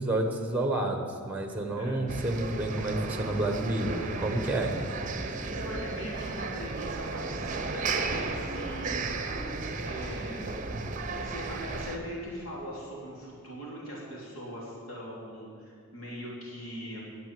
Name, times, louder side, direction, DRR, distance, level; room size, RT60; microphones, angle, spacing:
voice 1, 0.0-4.7, right 2 dB, 5° right, 4 dB, 1.1 m, -30 dB
sound 1, 2.1-12.0, right 3 dB, 35° right, 0.7 m, -34 dB
voice 2, 5.5-9.1 9.8-10.5 11.2-17.0, equal, 80° left, -5 dB, 3.5 m, -40 dB
11.0 x 8.3 x 7.6 m, 2.1 s
head